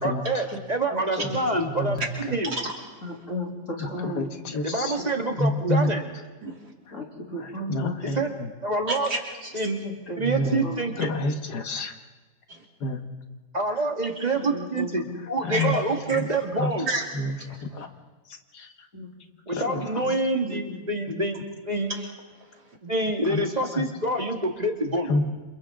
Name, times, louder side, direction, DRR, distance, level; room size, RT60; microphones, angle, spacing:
voice 1, 0.0-2.0 2.2-2.6 4.6-6.0 8.0-8.3 8.6-9.1 9.5-9.9 10.2-11.1 13.5-16.9 19.5-21.4 21.6-21.9 22.8-25.1, right 2 dB, 25° right, 3 dB, 1.9 m, -27 dB
voice 2, 0.9-1.4 3.0-4.4 5.0-5.1 5.6-5.8 6.9-8.0 9.8-10.2 10.6-10.8 14.4-15.2 18.9-19.1 19.7-20.2 20.4-20.9, equal, 50° left, -1 dB, 3.5 m, -35 dB
voice 3, 1.7-2.1 3.8-4.9 5.4-5.9 7.7-8.2 10.2-10.6 11.0-11.9 12.8-13.0 15.4-15.7 16.6-16.7 17.2-17.3 17.7-17.9 19.7-19.8 23.3-23.4 25.1-25.2, left 2 dB, 90° left, 6 dB, 2.1 m, -27 dB
voice 4, 8.9-9.5 12.5-12.6 15.5-15.7 16.1-16.2 16.9-17.0 17.3-17.6 21.9-22.1, right 2 dB, 80° right, -1 dB, 3.9 m, -31 dB
29.0 x 27.0 x 3.8 m, 1.2 s
omnidirectional pair, 1.7 m